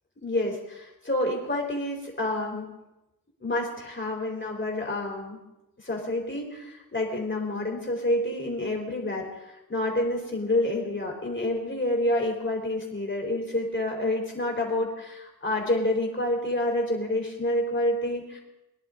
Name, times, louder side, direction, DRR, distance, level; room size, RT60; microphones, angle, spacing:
voice 1, 0.2-2.7 3.4-5.4 5.8-18.4, left 1 dB, 30° left, -1 dB, 3.8 m, -28 dB
23.0 x 11.0 x 3.8 m, 0.95 s
wide cardioid pair, 85°, 37 cm